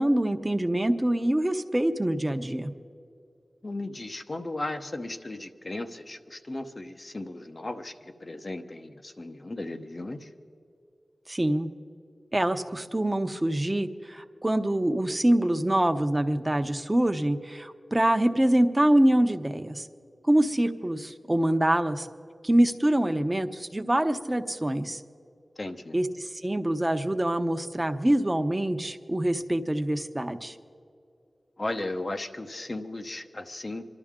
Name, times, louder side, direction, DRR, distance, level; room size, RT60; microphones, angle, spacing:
voice 1, 0.0-2.7 11.3-11.7 12.3-19.9 20.2-22.1 22.4-25.0 25.9-30.6, right 1 dB, 25° right, 7 dB, 0.9 m, -25 dB
voice 2, 3.6-10.3 25.6-26.0 31.6-33.9, left 2 dB, 45° left, 6 dB, 1.0 m, -36 dB
26.5 x 12.0 x 3.7 m, 2.5 s
wide cardioid pair, 60°, 0 cm